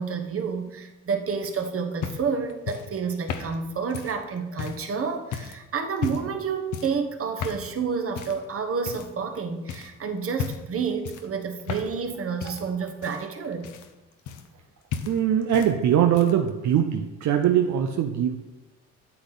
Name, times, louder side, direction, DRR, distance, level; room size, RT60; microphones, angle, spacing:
voice 1, 0.0-13.7, right 5 dB, 45° right, 4 dB, 1.3 m, -29 dB
sound 1, 1.4-4.9 5.3-5.6 6.0-6.4 6.7-7.0 7.4-7.7 8.2-8.5 8.9-9.4 9.7-9.9 10.3-10.7 11.0-12.1 12.4-14.7 14.9-15.7 16.0-16.5 17.4-17.5, left 7 dB, 80° left, 0.9 m, -35 dB
voice 2, 15.1-18.4, right 9 dB, 70° right, 5 dB, 0.7 m, -22 dB
8.6 x 8.4 x 4.0 m, 1.1 s
cardioid pair, 90°, 30 cm